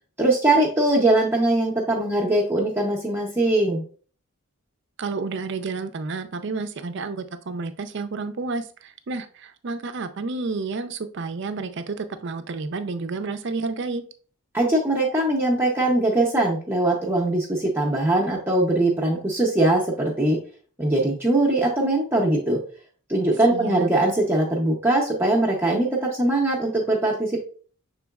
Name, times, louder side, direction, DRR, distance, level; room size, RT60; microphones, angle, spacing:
voice 1, 0.2-3.8 14.5-20.4 20.8-22.6 23.1-27.4, right 2 dB, 10° right, -3 dB, 0.6 m, -21 dB
voice 2, 5.0-14.0 23.5-23.9, right 4 dB, 50° right, 10 dB, 0.4 m, -30 dB
6.2 x 3.7 x 2.3 m, 0.43 s
head